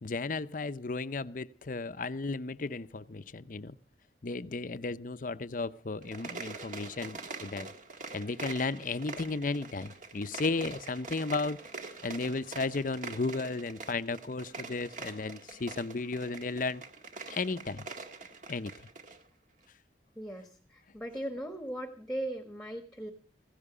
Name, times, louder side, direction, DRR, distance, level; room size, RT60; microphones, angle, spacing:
voice 1, 0.0-3.8 4.2-7.7 8.1-11.6 12.0-16.8 17.3-17.8 18.5-18.7, left 3 dB, 45° left, 0.7 m, -34 dB
sound 1, 6.0-19.2, right 4 dB, 45° right, 1.7 m, -44 dB
voice 2, 20.1-23.1, right 1 dB, 5° left, 1.3 m, -38 dB
16.5 x 16.5 x 5.0 m
head